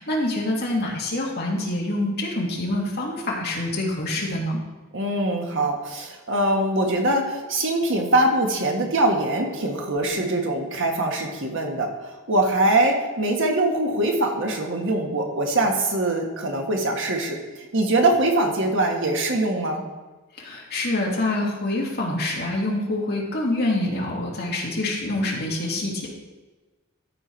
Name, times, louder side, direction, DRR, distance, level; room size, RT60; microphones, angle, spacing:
voice 1, 0.0-4.6 20.3-26.1, left 1 dB, 50° left, -2 dB, 2.1 m, -26 dB
voice 2, 4.9-19.8, right 1 dB, 60° right, 2 dB, 1.5 m, -23 dB
13.5 x 4.6 x 4.5 m, 1.2 s
head